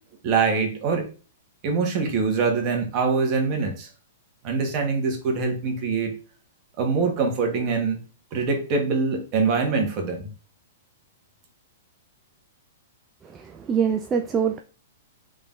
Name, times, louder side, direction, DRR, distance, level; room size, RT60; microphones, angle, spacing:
voice 1, 0.2-1.1 1.6-3.9 4.4-6.1 6.8-8.0 8.3-10.3, right 4 dB, 40° right, 3 dB, 1.2 m, -24 dB
voice 2, 13.3-14.6, right 7 dB, 20° right, 4 dB, 0.3 m, -24 dB
3.8 x 3.4 x 2.5 m, 0.36 s
hypercardioid pair, 115°, 0 cm